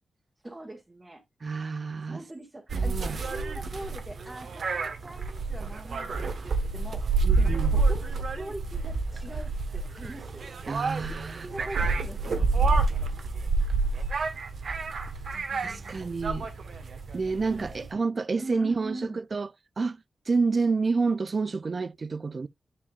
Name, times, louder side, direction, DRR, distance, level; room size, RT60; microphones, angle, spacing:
voice 1, 0.4-1.2 2.1-7.0 7.3-10.5 11.4-13.1 15.3-16.0 17.5-18.0 18.4-19.2, right 1 dB, 15° right, 1.4 m, -42 dB
voice 2, 1.4-2.2 2.7-3.2 7.2-7.7 10.7-11.5 15.6-16.5 17.1-19.5 19.8-20.0 20.3-22.5, right 4 dB, 40° right, 0.4 m, -29 dB
sound 1, 2.7-17.9, right 3 dB, 70° right, 1.2 m, -28 dB
9.8 x 4.8 x 2.4 m
wide cardioid pair, 150°, 0 cm